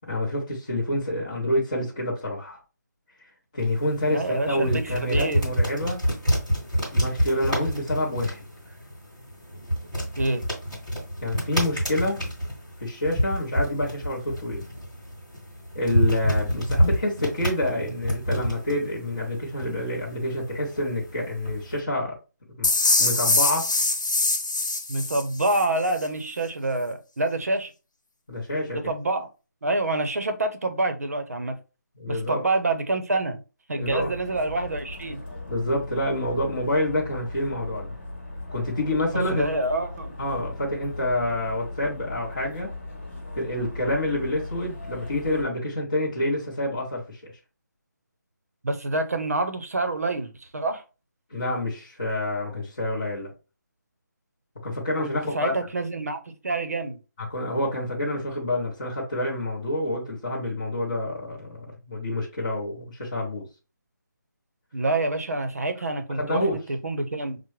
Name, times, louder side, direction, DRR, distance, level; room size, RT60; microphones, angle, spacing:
voice 1, 0.0-2.6 3.5-6.0 6.9-8.4 11.2-12.2 12.8-14.6 15.7-22.2 22.6-22.7 23.0-23.7 28.3-28.9 32.0-32.5 33.8-34.1 35.5-37.9 38.5-39.5 40.2-42.7 43.3-47.3 51.3-53.3 54.6-55.5 57.3-63.5 66.2-66.6, left 1 dB, 20° left, 0.8 m, -27 dB
sound 1, 3.6-21.8, equal, ahead, 1.2 m, -28 dB
voice 2, 4.1-5.4 10.2-10.4 24.9-27.7 28.7-29.3 29.6-31.6 32.1-33.4 33.7-35.2 39.3-40.2 48.6-50.8 55.0-57.0 64.7-67.4, right 2 dB, 55° right, 0.7 m, -27 dB
sound 2, 22.6-25.6, left 2 dB, 80° left, 0.9 m, -23 dB
sound 3, 33.8-45.4, left 2 dB, 40° left, 1.1 m, -38 dB
5.8 x 2.1 x 3.1 m
figure-of-eight pair, 180°, 10 cm